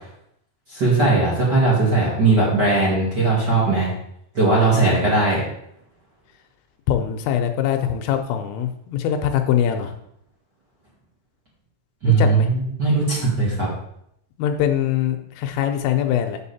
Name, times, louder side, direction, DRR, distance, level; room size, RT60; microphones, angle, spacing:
voice 1, 0.7-3.9 4.3-5.4 12.0-13.7, right 3 dB, 40° right, -7 dB, 1.5 m, -18 dB
voice 2, 6.9-9.9 12.1-12.5 14.4-16.4, left 9 dB, 85° left, 6 dB, 3.3 m, -22 dB
7.7 x 7.7 x 4.3 m, 0.73 s
omnidirectional pair, 5.7 m